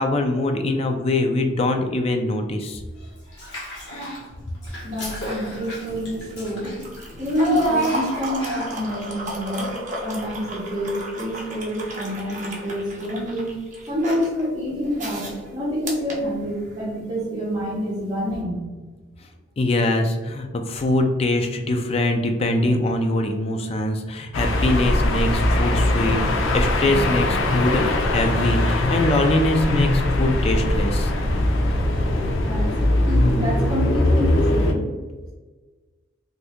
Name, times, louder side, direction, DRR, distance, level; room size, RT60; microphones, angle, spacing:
voice 1, 0.0-2.8 19.6-27.8 28.1-31.1, left 2 dB, 30° left, 5 dB, 0.3 m, -23 dB
Child speech kid speaking / Bathtub (filling or washing), 3.3-4.2 4.6-8.9, right 1 dB, 65° left, 1.2 m, -30 dB
sound 1, 4.7-17.0 18.2-18.4, right 1 dB, 40° right, 0.7 m, -35 dB
voice 2, 4.8-6.8 7.2-9.7 10.0-13.5 13.9-18.7 32.4-32.7 33.1-34.9, equal, 20° right, -8 dB, 1.0 m, -27 dB
sound 2, 24.3-34.7, left 1 dB, 90° left, 0.5 m, -21 dB
2.6 x 2.6 x 3.4 m, 1.3 s
head